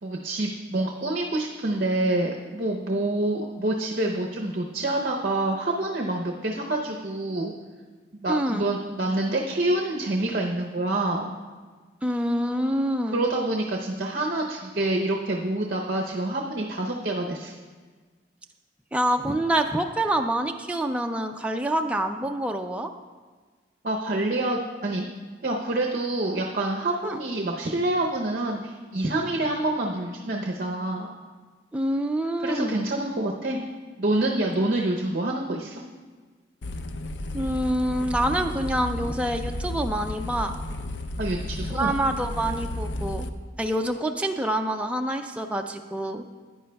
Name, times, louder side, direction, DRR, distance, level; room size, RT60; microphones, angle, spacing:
voice 1, 0.0-7.5 8.1-11.3 13.1-17.6 23.8-25.1 25.4-31.1 32.4-33.6 34.0-35.8 41.2-41.9, right 2 dB, 50° right, 0 dB, 0.7 m, -27 dB
voice 2, 8.3-8.6 12.0-13.3 18.9-22.9 27.0-27.2 31.7-32.9 37.3-40.5 41.7-43.3 43.6-46.2, right 1 dB, 5° right, 4 dB, 0.3 m, -26 dB
sound 1, 36.6-43.3, left 1 dB, 70° left, 0.5 m, -33 dB
14.5 x 9.6 x 2.3 m, 1.4 s
head